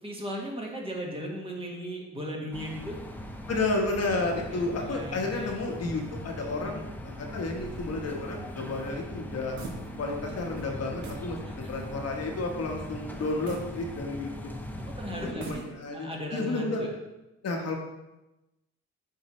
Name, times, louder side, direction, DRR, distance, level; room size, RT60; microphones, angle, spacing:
voice 1, 0.0-3.0 4.5-5.5 6.6-6.8 11.4-11.5 14.8-15.6 15.9-16.9, equal, 20° right, -1 dB, 1.4 m, -37 dB
sound 1, 2.5-15.3, left 1 dB, 5° left, 0.6 m, -40 dB
voice 2, 3.5-9.6 10.0-14.3 15.2-16.9 17.4-17.8, left 2 dB, 55° left, 1 dB, 1.2 m, -31 dB
sound 2, 7.5-10.3 10.5-10.7 11.0-11.3 11.8-11.9 13.5-14.5 15.2-16.1, right 3 dB, 70° right, 1.2 m, -44 dB
7.5 x 4.6 x 3.1 m, 0.97 s
cardioid pair, 90°, 30 cm